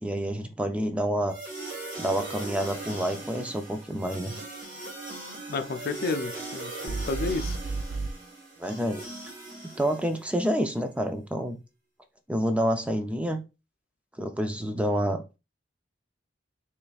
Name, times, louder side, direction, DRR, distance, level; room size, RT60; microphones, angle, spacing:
voice 1, 0.0-1.4 2.0-4.4 8.6-9.0 9.8-11.6 12.3-13.4 14.2-15.2, equal, 5° right, 0.4 m, -28 dB
sound 1, 1.3-10.4, right 2 dB, 50° right, 2.1 m, -40 dB
voice 2, 5.5-7.6, left 3 dB, 55° left, 0.4 m, -31 dB
sound 2, 6.9-8.1, right 3 dB, 85° right, 0.4 m, -32 dB
3.8 x 3.3 x 2.4 m
head